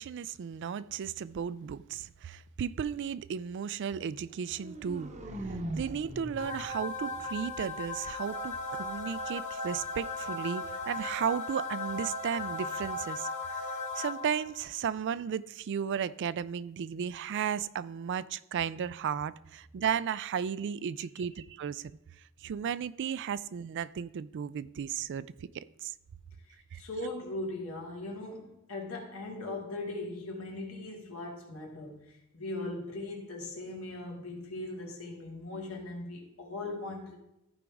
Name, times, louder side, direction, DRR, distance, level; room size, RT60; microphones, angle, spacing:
voice 1, 0.0-5.1 5.7-13.7 14.0-21.9 22.4-25.3 25.5-25.9 26.7-26.8, right 7 dB, 55° right, 17 dB, 0.3 m, -34 dB
sound 1, 4.3-8.3, right 1 dB, 35° right, 0.8 m, -42 dB
sound 2, 6.4-14.6, left 2 dB, 35° left, 1.7 m, -37 dB
voice 2, 26.4-37.2, left 2 dB, 75° left, -1 dB, 2.3 m, -39 dB
14.5 x 5.1 x 3.5 m, 0.85 s
head